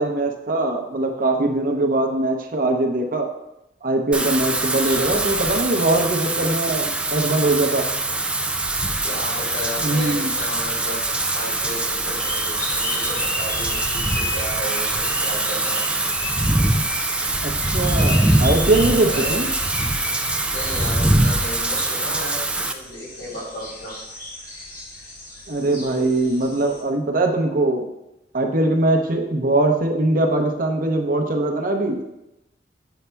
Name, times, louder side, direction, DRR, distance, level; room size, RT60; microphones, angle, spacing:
voice 1, 0.0-3.3 3.8-7.9 9.8-10.3 17.4-19.5 25.5-27.9 28.3-32.0, right 2 dB, 50° right, 3 dB, 0.7 m, -21 dB
Wind / Rain, 4.1-22.7, right 2 dB, 5° right, 0.3 m, -23 dB
voice 2, 4.8-5.2 9.0-11.0 11.3-15.9 18.8-19.4 20.5-24.0, equal, 80° left, -4 dB, 2.2 m, -34 dB
sound 1, 8.9-26.8, left 1 dB, 50° left, 2.2 m, -35 dB
8.0 x 5.6 x 2.2 m, 0.90 s
head